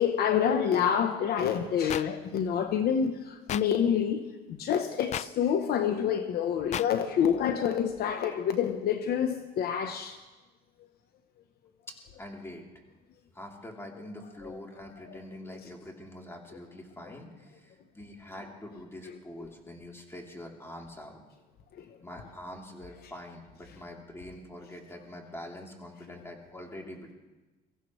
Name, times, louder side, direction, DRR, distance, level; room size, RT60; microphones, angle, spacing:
voice 1, 0.0-10.2 15.1-15.2 21.8-21.9, left 8 dB, 60° left, 1.0 m, -27 dB
sound 1, 1.9-2.0 3.5-3.6 5.1-5.3 6.7-6.9, left 11 dB, 40° left, 0.4 m, -32 dB
voice 2, 11.9-12.7 13.3-21.2 22.0-27.1, left 1 dB, 15° left, 3.4 m, -44 dB
23.5 x 15.5 x 3.2 m
cardioid pair, 100°, 18 cm